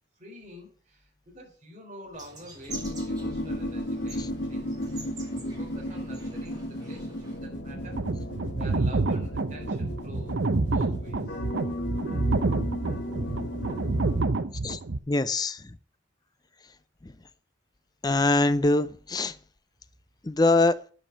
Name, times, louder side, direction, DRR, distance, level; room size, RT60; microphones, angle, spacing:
voice 1, 0.2-4.7 5.2-8.0 8.6-11.4, equal, 40° right, -1 dB, 3.8 m, -47 dB
sound 1, 2.1-7.4, right 2 dB, 20° right, 2.4 m, -46 dB
sound 2, 2.7-14.2, left 1 dB, 70° left, 1.8 m, -35 dB
sound 3, 7.8-15.0, right 3 dB, 75° right, 0.7 m, -28 dB
voice 2, 15.1-15.6 18.0-19.3 20.2-20.8, left 2 dB, 20° left, 13 dB, 0.5 m, -23 dB
9.9 x 5.3 x 6.7 m, 0.42 s
head